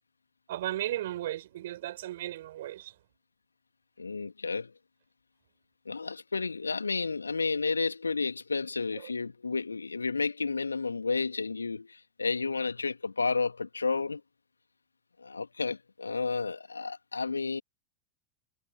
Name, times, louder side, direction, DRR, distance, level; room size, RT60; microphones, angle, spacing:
voice 1, 0.5-2.9, right 14 dB, 55° right, 6.4 m, -35 dB
voice 2, 4.0-4.7 5.9-14.2 15.2-17.6, left 4 dB, 75° left, 2.5 m, -31 dB
figure-of-eight pair, 90°, 0 cm